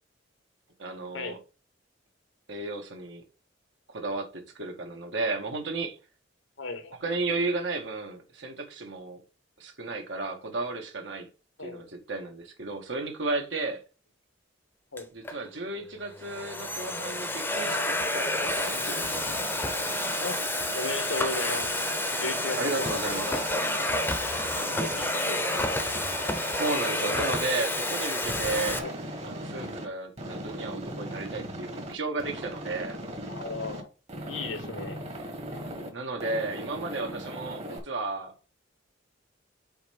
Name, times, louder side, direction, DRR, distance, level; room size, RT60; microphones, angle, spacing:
voice 1, 0.8-1.4 2.5-3.2 3.9-6.0 7.0-9.2 9.6-11.3 11.6-13.8 15.1-19.3 22.6-23.3 26.5-28.8 29.2-33.0 35.9-38.3, right 3 dB, 70° right, 1.8 m, -33 dB
voice 2, 6.6-6.9 11.6-11.8 14.9-15.1 20.2-20.4 20.7-21.9 22.2-23.6 24.5-25.8 28.8-28.9 33.3-33.9 34.2-35.0 37.6-37.9, left 3 dB, 85° left, 1.6 m, -36 dB
Domestic sounds home sounds, 15.0-15.4 16.1-28.8, left 1 dB, 10° left, 0.9 m, -30 dB
Aircraft, 18.4-29.9 30.2-31.9 32.2-33.8 34.1-35.9 36.2-37.8, right 1 dB, 35° right, 1.5 m, -39 dB
5.7 x 4.4 x 5.3 m
head